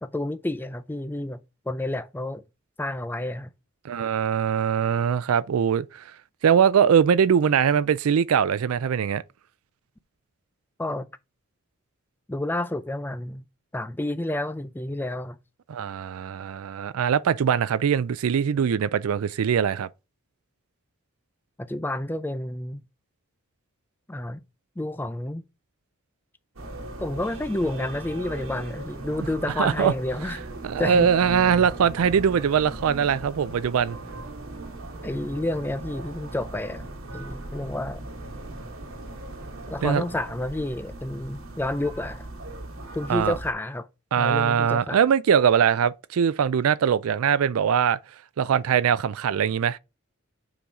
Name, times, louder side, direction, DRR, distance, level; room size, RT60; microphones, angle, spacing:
voice 1, 0.0-1.4 1.7-2.4 2.8-3.5 10.8-11.1 12.3-13.4 13.7-15.4 21.6-22.8 24.1-24.4 24.8-25.5 27.0-30.4 30.8-31.1 35.0-36.8 37.1-38.0 39.7-42.2 42.9-43.9 44.2-45.0, left 1 dB, 10° left, 0.4 m, -30 dB
voice 2, 3.8-6.0 6.4-9.2 15.7-19.9 29.6-29.9 30.6-34.0 39.8-40.0 43.1-43.3 44.1-48.0 48.4-49.8, right 7 dB, 85° right, 0.4 m, -22 dB
sound 1, 26.6-43.5, right 2 dB, 70° right, 1.7 m, -38 dB
7.0 x 3.9 x 4.8 m
head